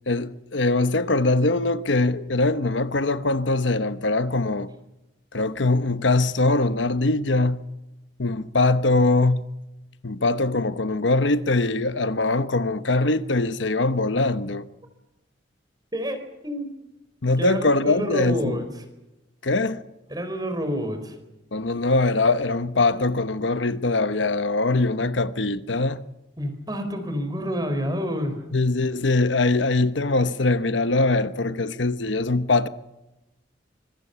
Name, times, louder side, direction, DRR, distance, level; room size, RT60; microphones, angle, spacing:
voice 1, 0.1-4.7 5.3-7.6 8.2-9.5 10.0-14.7 17.2-18.6 19.4-19.8 21.5-26.0 28.5-32.7, left 2 dB, 80° left, 1.1 m, -22 dB
voice 2, 15.9-16.8 17.4-18.7 20.1-21.2 26.4-28.4, equal, 20° right, 4.5 m, -28 dB
25.5 x 22.0 x 7.0 m
head